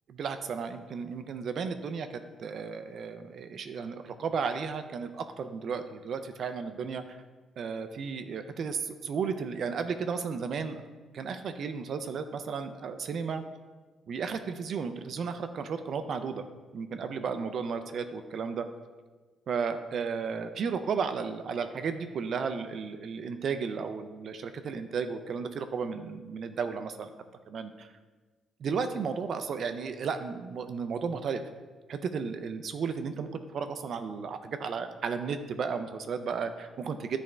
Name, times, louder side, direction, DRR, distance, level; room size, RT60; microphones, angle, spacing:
voice 1, 0.1-2.1 2.4-7.2 7.6-10.8 11.1-13.4 14.1-16.4 16.7-18.7 19.5-27.1 27.5-27.9 28.6-31.4 31.9-37.2, right 5 dB, 60° right, 9 dB, 0.3 m, -34 dB
8.6 x 3.4 x 3.2 m, 1.3 s
cardioid pair, 90°, 0 cm